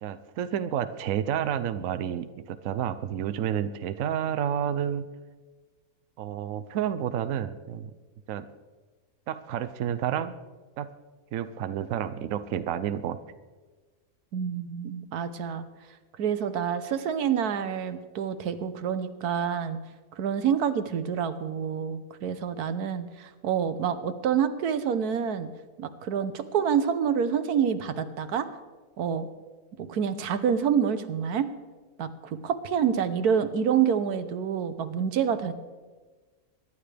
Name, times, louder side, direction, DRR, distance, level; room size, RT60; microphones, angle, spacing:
voice 1, 0.0-5.1 6.2-7.9 8.3-8.5 9.3-10.3 10.8-10.9 11.3-13.2, right 9 dB, 65° right, 11 dB, 1.0 m, -30 dB
voice 2, 14.3-15.7 16.2-19.8 20.2-25.5 25.8-28.5 29.0-29.3 29.8-31.5 32.0-35.5, right 7 dB, 85° right, 11 dB, 1.4 m, -27 dB
24.0 x 11.0 x 3.4 m, 1.3 s
omnidirectional pair, 1.6 m